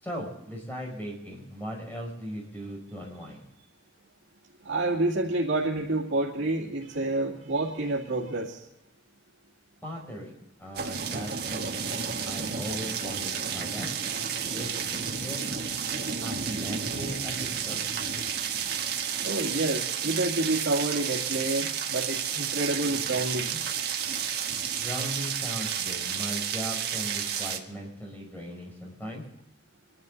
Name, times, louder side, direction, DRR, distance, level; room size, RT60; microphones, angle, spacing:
voice 1, 0.0-3.4 9.8-13.9 14.5-14.7 15.2-15.4 16.2-17.8 24.8-29.2, equal, 10° left, -2 dB, 5.3 m, -38 dB
voice 2, 4.6-8.6 19.2-23.6, right 2 dB, 85° right, -3 dB, 2.2 m, -28 dB
sound 1, 10.8-27.6, right 7 dB, 55° right, 1.6 m, -31 dB
26.0 x 12.0 x 4.0 m, 0.90 s
head